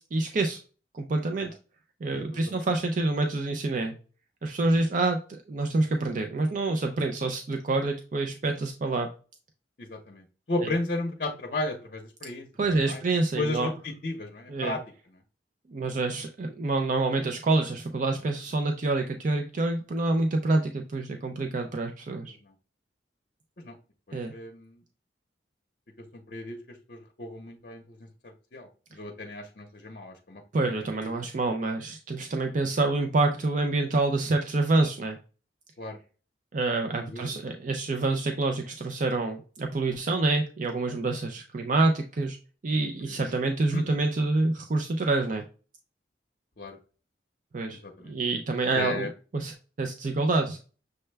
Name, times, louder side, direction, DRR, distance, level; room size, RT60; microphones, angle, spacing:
voice 1, 0.1-0.6 0.9-1.5 2.0-3.9 4.4-9.1 10.6-10.7 12.6-13.7 14.5-14.7 15.7-22.4 24.1-24.3 30.5-35.2 36.5-42.4 42.6-45.4 47.5-47.8 48.0-49.1 49.3-50.6, right 2 dB, 45° right, 4 dB, 0.4 m, -27 dB
voice 2, 2.1-2.7 9.8-12.5 12.8-13.0 13.4-14.8 22.3-22.5 23.6-23.8 24.1-24.8 26.1-30.7 31.0-31.2 35.8-36.0 37.0-37.3 43.1-43.3 43.7-44.0 46.6-46.8 47.8-48.1 48.7-49.1, left 2 dB, 50° left, 2 dB, 0.7 m, -35 dB
6.5 x 2.2 x 3.2 m, 0.36 s
head